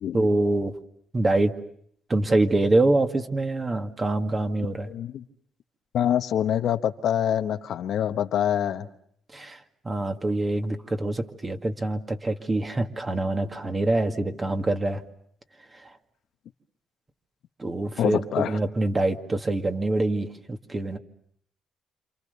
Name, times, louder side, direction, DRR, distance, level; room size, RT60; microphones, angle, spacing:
voice 1, 0.1-0.7 1.1-1.5 2.1-4.9 9.3-15.0 15.8-15.9 17.6-21.0, right 2 dB, 25° right, 2.1 m, -25 dB
voice 2, 4.9-5.2 5.9-8.9 18.0-18.6, left 10 dB, 75° left, 1.2 m, -25 dB
28.0 x 27.5 x 6.8 m
cardioid pair, 90°, 0 cm